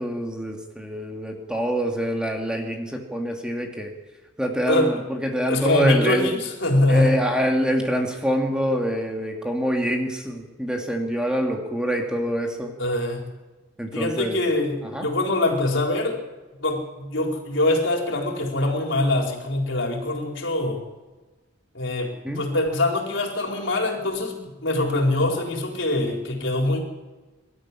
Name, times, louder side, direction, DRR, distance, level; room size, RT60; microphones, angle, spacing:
voice 1, 0.0-3.9 4.4-6.3 6.9-12.8 13.8-14.4 14.8-15.1 22.2-22.4, equal, 5° right, 2 dB, 2.4 m, -25 dB
voice 2, 4.7-5.0 5.5-7.1 12.8-13.2 13.9-16.2 16.5-20.8 21.7-26.8, left 2 dB, 70° left, 1 dB, 4.5 m, -23 dB
24.0 x 13.0 x 9.9 m, 1.2 s
head